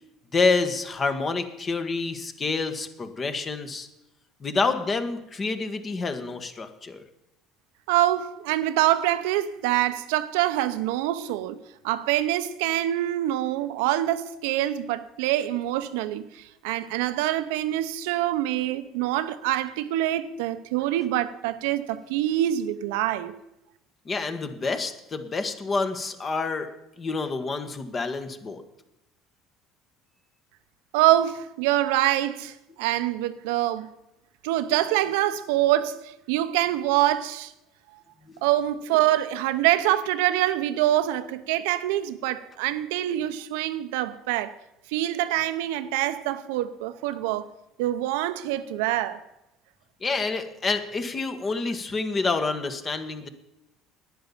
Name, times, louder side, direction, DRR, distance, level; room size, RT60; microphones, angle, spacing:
voice 1, 0.3-3.9 4.4-7.0 24.0-26.7 27.0-28.6 38.3-38.4 50.0-53.3, left 4 dB, 30° left, 1.5 m, -28 dB
voice 2, 7.9-23.3 30.9-33.9 34.4-37.5 38.4-44.5 44.9-47.5 47.8-49.2, right 14 dB, 90° right, 0.7 m, -25 dB
10.0 x 10.0 x 7.2 m
supercardioid pair, 95°, 0 cm